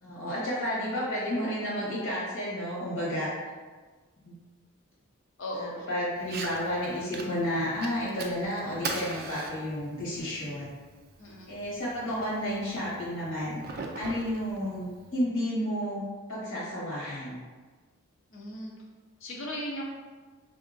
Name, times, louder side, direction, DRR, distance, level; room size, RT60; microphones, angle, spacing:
voice 1, 0.0-3.3 4.2-4.3 5.5-10.7 11.5-13.6 13.9-16.0 16.3-17.4, equal, 80° left, -8 dB, 1.2 m, -31 dB
voice 2, 5.4-5.7 11.2-11.5 18.3-18.7 19.2-19.8, left 1 dB, 65° left, -3 dB, 0.7 m, -36 dB
Fire, 6.2-15.2, right 3 dB, 45° right, 0.3 m, -42 dB
3.4 x 2.8 x 2.5 m, 1.4 s
head